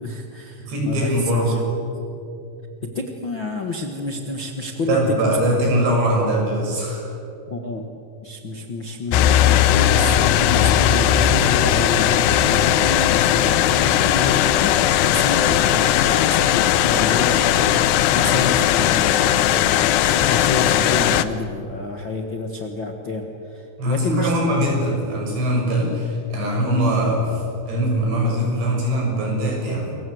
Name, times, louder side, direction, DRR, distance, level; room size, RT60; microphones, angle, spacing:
voice 1, 0.0-1.6 2.8-5.0 5.2-5.4 7.5-7.8 8.2-24.4, left 2 dB, 55° left, 3 dB, 1.3 m, -28 dB
voice 2, 0.6-1.6 4.9-7.1 23.8-30.0, right 1 dB, 85° right, -1 dB, 8.9 m, -21 dB
sound 1, 9.1-21.2, left 11 dB, 80° left, 2.9 m, -18 dB
28.0 x 24.0 x 7.9 m, 2.8 s
omnidirectional pair, 4.8 m